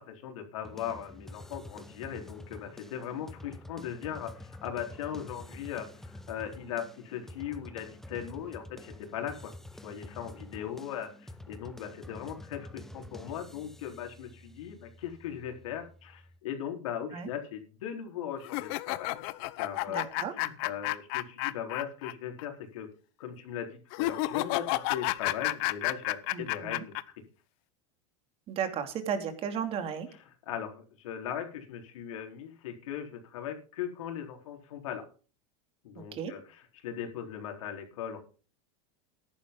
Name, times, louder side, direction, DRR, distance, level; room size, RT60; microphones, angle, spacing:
voice 1, 0.0-9.5 9.8-19.2 19.6-20.1 20.4-22.9 23.2-26.9 30.5-35.0 35.8-36.4 36.8-38.2, left 9 dB, 85° left, 4 dB, 4.1 m, -39 dB
sound 1, 0.6-16.4, left 1 dB, ahead, 0.9 m, -48 dB
sound 2, 18.4-22.1 22.4-22.5 23.9-27.0, left 19 dB, 55° left, 0.8 m, -31 dB
voice 2, 19.9-20.3 26.3-26.8 28.5-30.1 35.9-36.3, right 7 dB, 35° right, 8 dB, 2.6 m, -34 dB
13.5 x 11.5 x 3.8 m, 0.37 s
supercardioid pair, 145°, 16 cm